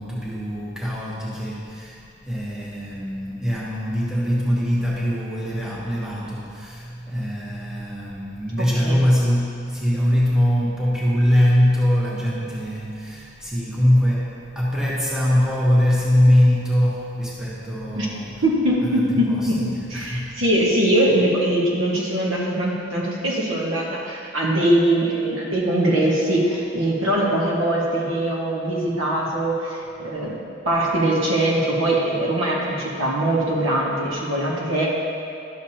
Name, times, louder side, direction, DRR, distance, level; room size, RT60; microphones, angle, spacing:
voice 1, 0.0-2.0 2.2-18.3 18.9-19.0 19.3-19.5 19.9-20.3, equal, 5° right, -6 dB, 1.0 m, -22 dB
voice 2, 8.6-9.0 17.9-18.1 18.4-19.5 19.9-30.4 30.6-34.9, right 1 dB, 80° right, -4 dB, 1.6 m, -22 dB
11.5 x 7.0 x 2.8 m, 2.5 s
head